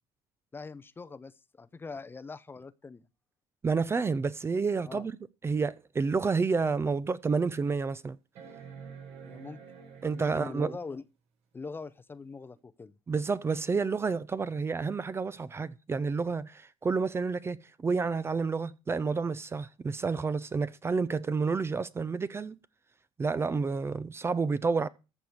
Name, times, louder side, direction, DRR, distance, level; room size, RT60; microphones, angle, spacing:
voice 1, 0.5-3.0 4.8-5.1 9.2-9.6 10.1-11.0 11.5-12.9, left 4 dB, 20° left, 0.6 m, -42 dB
voice 2, 3.6-5.1 5.4-8.2 10.0-10.8 13.1-22.6 23.2-24.9, right 4 dB, 20° right, 0.6 m, -29 dB
sound 1, 8.4-10.8 12.5-12.6, right 6 dB, 65° right, 4.5 m, -48 dB
14.0 x 4.9 x 7.1 m
cardioid pair, 115°, 11 cm